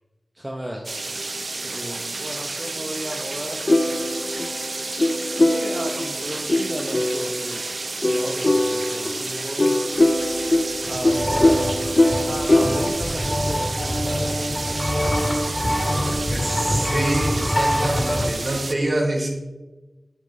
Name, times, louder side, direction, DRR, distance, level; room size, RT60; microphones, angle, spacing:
voice 1, 0.3-0.9 1.6-3.6 5.3-7.6 8.0-9.9 10.9-11.6 12.3-16.2, right 1 dB, 20° right, 0 dB, 0.7 m, -34 dB
sound 1, 0.8-18.7, right 3 dB, 65° right, 0.3 m, -31 dB
sound 2, 3.7-7.5 8.0-12.9, left 1 dB, 50° left, 0.5 m, -22 dB
sound 3, 10.5-10.6 10.8-18.4, equal, 35° left, 1.9 m, -25 dB
voice 2, 16.2-19.3, right 1 dB, 45° right, 1 dB, 1.6 m, -25 dB
7.1 x 3.1 x 5.7 m, 1.1 s
wide cardioid pair, 50°, 0 cm